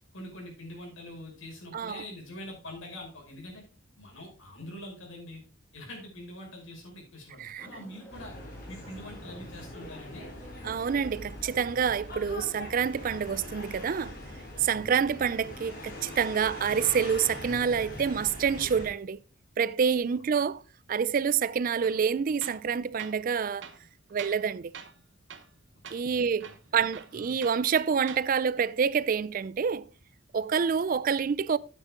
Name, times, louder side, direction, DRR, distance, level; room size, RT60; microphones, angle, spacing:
voice 1, 0.1-3.6 4.0-5.4 5.7-8.3 8.7-10.3 14.7-14.9 20.1-20.2 26.0-26.8 27.1-27.3, left 1 dB, 90° left, 5.5 m, -44 dB
sound 1, 7.6-17.6, equal, 10° left, 2.5 m, -53 dB
sound 2, 8.1-18.9, left 1 dB, 50° left, 4.0 m, -42 dB
voice 2, 10.6-14.1 14.6-19.2 19.6-20.6 20.9-23.7 24.1-24.7 25.9-29.8 30.3-31.6, right 6 dB, 45° right, 0.4 m, -27 dB
Tools, 21.8-22.0 22.4-22.7 23.0-23.2 23.6-24.5 24.7-25.0 25.3-25.6 25.8-26.0 26.4-27.6 28.0-28.3, right 7 dB, 65° right, 1.0 m, -45 dB
9.6 x 9.1 x 3.7 m
head